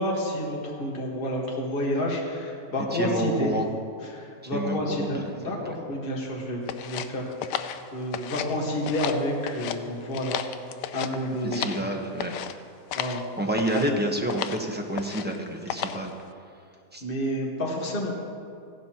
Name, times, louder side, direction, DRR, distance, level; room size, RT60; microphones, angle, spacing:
voice 1, 0.0-3.5 4.0-10.4 10.9-11.7 12.9-13.2 13.7-13.9 17.0-18.1, left 1 dB, 30° left, -2 dB, 1.7 m, -29 dB
voice 2, 2.9-3.6 4.5-4.8 5.1-5.2 11.5-12.3 13.4-16.1 16.9-17.0, right 1 dB, 10° right, 0 dB, 0.8 m, -28 dB
sound 1, 6.7-8.6 8.8-9.8 10.1-11.9 12.2-12.5 12.9-13.2 13.6-13.9 14.3-14.6 15.0-15.4 15.7-16.1, left 9 dB, 80° left, 1.2 m, -33 dB
16.0 x 11.5 x 3.0 m, 2.3 s
omnidirectional pair, 1.8 m